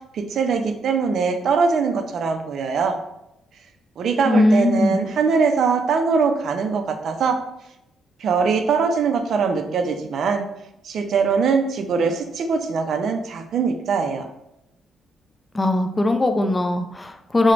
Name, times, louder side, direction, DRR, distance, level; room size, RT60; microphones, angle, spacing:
voice 1, 0.1-2.9 4.0-7.4 8.2-10.4 10.8-14.3, right 5 dB, 65° right, 6 dB, 0.3 m, -22 dB
voice 2, 4.3-5.0 15.5-17.5, left 2 dB, 20° left, 6 dB, 0.3 m, -19 dB
2.4 x 2.0 x 3.1 m, 0.85 s
cardioid pair, 90°, 0 cm